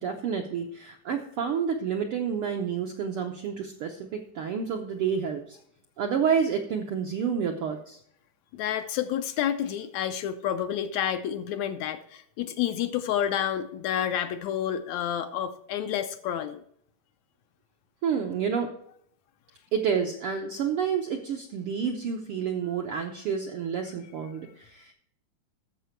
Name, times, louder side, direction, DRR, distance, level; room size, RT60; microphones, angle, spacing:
voice 1, 0.0-5.6 6.0-8.0 18.0-18.7 19.7-24.9, right 7 dB, 75° right, 3 dB, 1.3 m, -29 dB
voice 2, 8.5-16.6, left 10 dB, 75° left, 8 dB, 1.8 m, -29 dB
12.0 x 7.3 x 4.5 m, 0.65 s
omnidirectional pair, 3.5 m